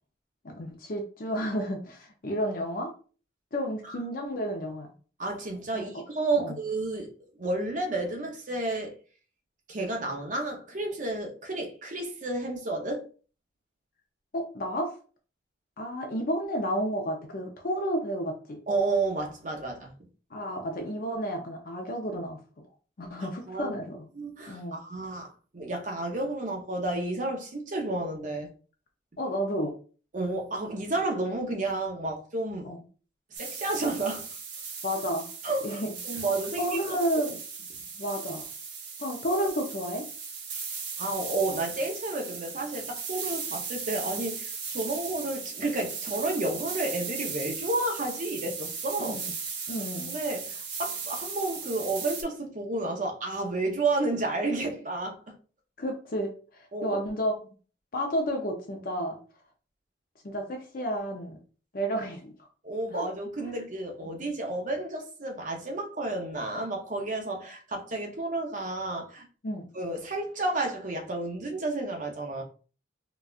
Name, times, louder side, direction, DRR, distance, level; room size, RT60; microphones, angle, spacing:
voice 1, 0.4-2.9 3.5-4.9 5.7-5.9 6.4-6.6 14.3-14.9 15.8-18.6 20.3-22.4 23.0-24.1 24.5-24.8 29.2-29.7 32.6-32.8 34.8-35.3 35.6-36.2 36.6-37.4 38.0-38.4 39.0-40.0 49.0-49.3 49.7-50.1 55.8-57.3 57.9-59.2 60.2-61.4 61.7-62.3 62.9-63.1 64.1-64.2 69.4-69.7, equal, 50° left, 0.5 m, -31 dB
voice 2, 5.2-9.0 9.7-13.1 18.7-19.9 23.2-23.8 24.1-28.5 30.1-32.7 33.3-34.3 35.4-37.0 41.0-49.2 50.0-55.3 56.7-57.0 62.6-69.3 69.7-72.4, right 2 dB, 45° right, 0.7 m, -31 dB
sound 1, 33.3-52.2, right 5 dB, 85° right, 0.8 m, -37 dB
4.0 x 2.3 x 2.4 m
head